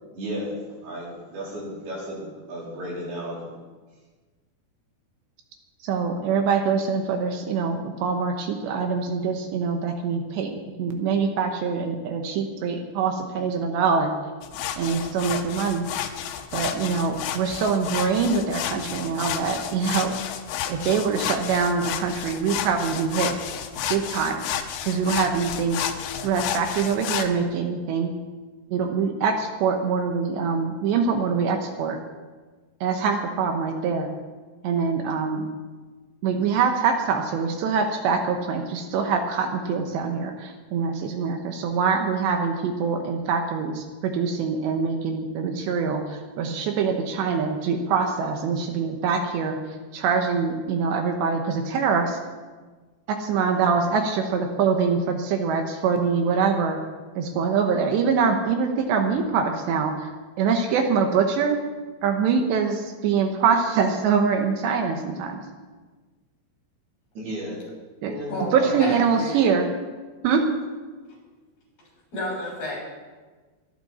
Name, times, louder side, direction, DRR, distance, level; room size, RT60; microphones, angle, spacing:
voice 1, 0.2-0.5 0.8-2.2 2.5-3.4 67.2-67.6 68.1-68.9, right 1 dB, 60° right, -5 dB, 5.7 m, -33 dB
voice 2, 5.8-10.5 10.8-14.1 14.8-15.9 16.5-20.2 20.7-23.3 23.9-24.4 24.8-25.8 26.2-28.1 28.7-32.0 32.8-34.1 34.6-35.5 36.2-49.6 49.9-52.2 53.1-56.8 57.2-60.1 60.4-61.6 62.0-65.4 68.0-68.2 68.5-69.7 70.2-70.4, right 5 dB, 75° right, 4 dB, 3.2 m, -24 dB
sound 1, 14.4-27.3, left 9 dB, 85° left, 3.4 m, -31 dB
voice 3, 68.8-69.4 72.1-72.8, left 1 dB, 50° left, -4 dB, 8.2 m, -30 dB
23.0 x 12.0 x 4.2 m, 1.3 s
omnidirectional pair, 5.2 m